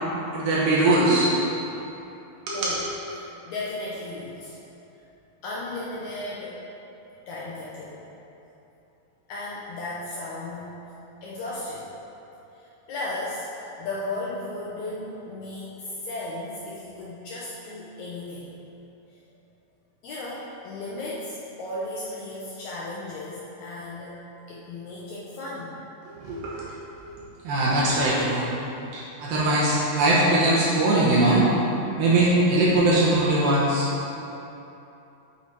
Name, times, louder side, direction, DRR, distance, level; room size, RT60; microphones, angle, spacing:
voice 1, 0.3-1.3 2.5-2.7 26.2-26.6 27.0-27.1 27.4-28.5 28.9-31.5 32.0-33.9, right 2 dB, 75° right, -7 dB, 2.7 m, -21 dB
voice 2, 3.1-4.6 5.4-6.5 7.3-8.0 9.3-10.7 11.2-11.9 12.5-18.5 20.0-24.1 24.5-25.7, left 2 dB, 85° left, -7 dB, 1.6 m, -35 dB
8.6 x 4.2 x 4.7 m, 2.9 s
omnidirectional pair, 4.4 m